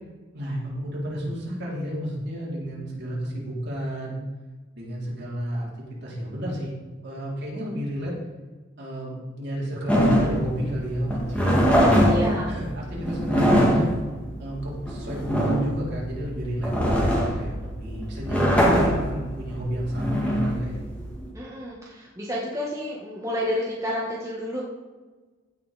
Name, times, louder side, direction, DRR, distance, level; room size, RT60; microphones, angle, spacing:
voice 1, 0.3-4.2 4.8-5.7 6.0-6.8 7.0-8.1 8.8-12.1 12.5-13.9 14.4-20.8, equal, 55° right, -5 dB, 3.6 m, -31 dB
sound 1, 9.9-21.2, equal, 5° left, 2.0 m, -22 dB
voice 2, 12.1-12.5 21.3-24.6, equal, 15° right, -5 dB, 1.5 m, -30 dB
15.5 x 5.5 x 4.2 m, 1.3 s
head